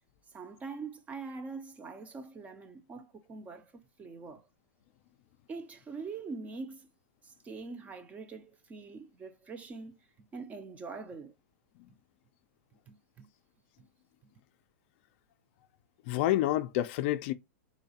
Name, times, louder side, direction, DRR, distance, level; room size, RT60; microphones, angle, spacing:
voice 1, 0.3-3.7 4.0-4.5 5.5-6.9 7.2-11.3 12.9-13.3 13.8-13.9, right 4 dB, 15° right, 0.4 m, -44 dB
voice 2, 16.0-17.3, left 14 dB, 45° left, 0.4 m, -29 dB
3.9 x 2.4 x 2.7 m
hypercardioid pair, 135°, 8 cm